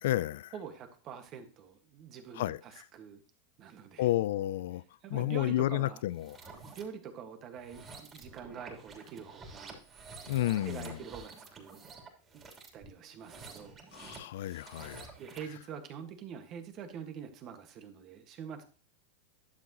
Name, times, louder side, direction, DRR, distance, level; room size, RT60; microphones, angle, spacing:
voice 1, 0.0-0.5 2.3-2.9 4.0-4.8 5.1-6.4 10.3-11.0 13.9-15.1, left 14 dB, 70° left, 0.3 m, -31 dB
voice 2, 0.5-3.2 3.6-4.1 5.0-6.0 6.6-9.8 10.6-11.8 12.3-12.4 12.7-13.8 15.2-18.6, right 7 dB, 40° right, 1.6 m, -45 dB
sound 1, 6.1-6.8 7.5-15.6, right 4 dB, 25° right, 3.3 m, -50 dB
11.5 x 7.3 x 3.0 m
hypercardioid pair, 110°, 0 cm